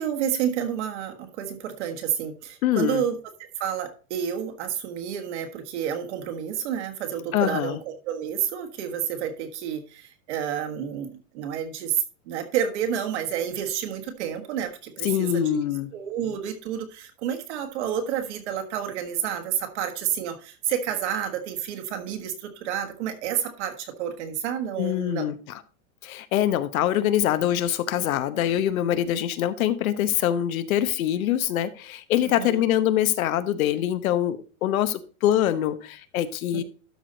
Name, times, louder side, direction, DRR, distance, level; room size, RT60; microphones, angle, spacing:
voice 1, 0.0-3.2 3.6-15.6 15.9-25.3 32.2-32.6, right 9 dB, 50° right, 5 dB, 1.5 m, -30 dB
voice 2, 2.6-3.0 7.3-7.8 15.0-15.9 24.8-25.6 26.0-36.6, left 11 dB, 70° left, 13 dB, 1.0 m, -24 dB
12.5 x 4.7 x 4.0 m, 0.36 s
supercardioid pair, 180°, 43 cm